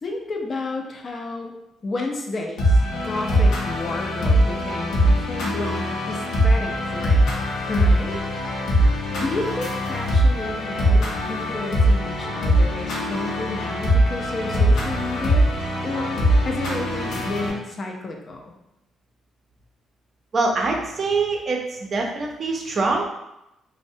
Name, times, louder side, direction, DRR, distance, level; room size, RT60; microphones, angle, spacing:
voice 1, 0.0-1.5 1.8-7.3 7.7-8.2 9.2-15.5 15.8-18.5, left 2 dB, 45° left, 2 dB, 0.4 m, -31 dB
sound 1, 2.6-17.5, equal, 80° left, 0.6 m, -21 dB
voice 2, 20.3-23.0, right 3 dB, 45° right, 1 dB, 0.5 m, -24 dB
2.4 x 2.0 x 2.6 m, 0.87 s
cardioid pair, 90°, 0 cm